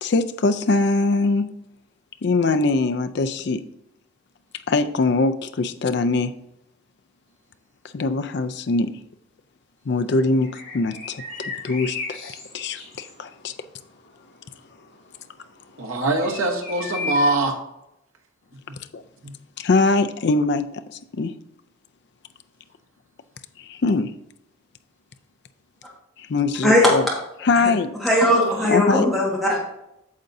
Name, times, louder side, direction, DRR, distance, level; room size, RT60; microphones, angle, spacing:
voice 1, 0.0-1.5 2.2-3.7 4.7-6.4 7.9-8.9 9.9-13.5 18.9-19.0 19.6-21.3 23.6-24.1 26.2-27.0 27.4-27.9 28.7-29.1, left 3 dB, 55° left, 10 dB, 0.4 m, -22 dB
sound 1, 10.4-17.3, left 4 dB, 80° left, 2.4 m, -35 dB
voice 2, 15.8-17.6 28.6-28.7, right 2 dB, 85° right, 2 dB, 1.1 m, -23 dB
voice 3, 28.0-29.6, left 1 dB, ahead, -5 dB, 1.5 m, -18 dB
8.6 x 6.5 x 2.6 m, 0.84 s
head